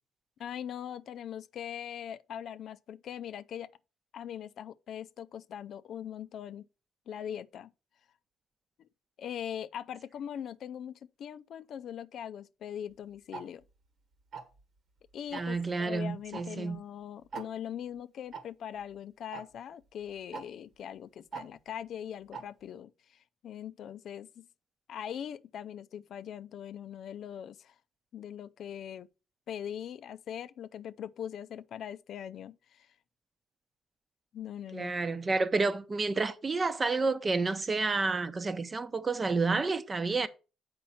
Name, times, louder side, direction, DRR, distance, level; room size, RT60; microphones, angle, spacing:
voice 1, 0.4-3.7 4.1-6.7 7.1-7.7 9.2-13.6 15.1-24.5 24.9-27.8 28.1-29.1 29.5-32.9 34.3-34.9, left 9 dB, 70° left, 0.4 m, -41 dB
Tick-tock, 13.3-13.4 14.3-14.6 15.3-15.6 16.3-16.4 16.7-16.8 17.3-17.5 18.3-18.4 19.3-19.4 20.3-20.4 21.3-21.4 22.3-22.4, right 5 dB, 65° right, 1.5 m, -40 dB
voice 2, 15.3-16.8 34.7-40.3, right 3 dB, 30° right, 0.8 m, -30 dB
7.0 x 5.2 x 5.7 m
cardioid pair, 90°, 0 cm